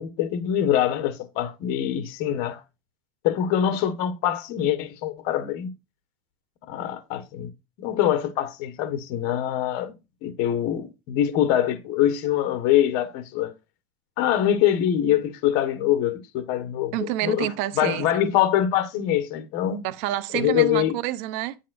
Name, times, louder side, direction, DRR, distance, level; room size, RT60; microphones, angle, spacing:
voice 1, 0.0-2.6 3.2-5.7 6.7-7.5 7.8-9.9 10.2-13.5 14.2-17.5 17.8-19.8 20.3-20.9, left 11 dB, 60° left, 1.4 m, -24 dB
voice 2, 16.9-18.1 19.8-21.6, right 15 dB, 65° right, 0.8 m, -28 dB
9.9 x 7.3 x 2.6 m
supercardioid pair, 135°, 8 cm